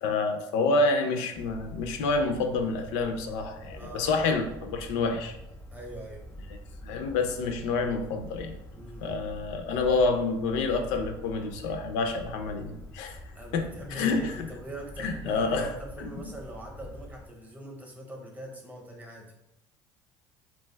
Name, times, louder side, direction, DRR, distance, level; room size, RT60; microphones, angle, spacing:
voice 1, 0.0-5.4 6.8-8.6 9.0-13.2 13.5-14.5 15.0-16.1, left 3 dB, 85° left, 5 dB, 0.4 m, -28 dB
sound 1, 1.3-17.3, equal, 20° left, 0.4 m, -45 dB
voice 2, 3.7-4.2 5.7-6.2 8.7-9.3 13.3-19.3, right 1 dB, 15° right, 1 dB, 0.7 m, -42 dB
2.5 x 2.2 x 3.2 m, 0.88 s
cardioid pair, 115°, 10 cm